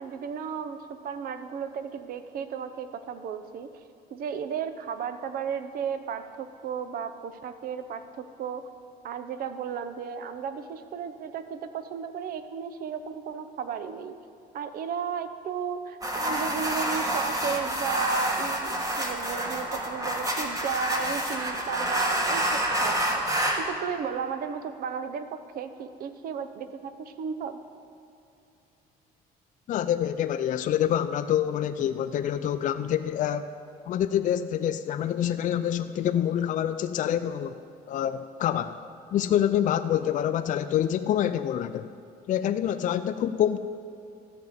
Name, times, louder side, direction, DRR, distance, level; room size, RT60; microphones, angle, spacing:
voice 1, 0.0-3.7 4.1-8.7 9.0-14.1 14.5-27.6, right 7 dB, 60° right, 10 dB, 0.7 m, -34 dB
sound 1, 16.0-23.6, right 1 dB, 20° right, 1.5 m, -28 dB
voice 2, 29.7-33.5 33.9-37.6 37.9-38.8 39.1-41.9 42.3-43.6, left 10 dB, 50° left, 10 dB, 0.4 m, -26 dB
13.5 x 5.3 x 7.9 m, 2.6 s
cardioid pair, 110°, 17 cm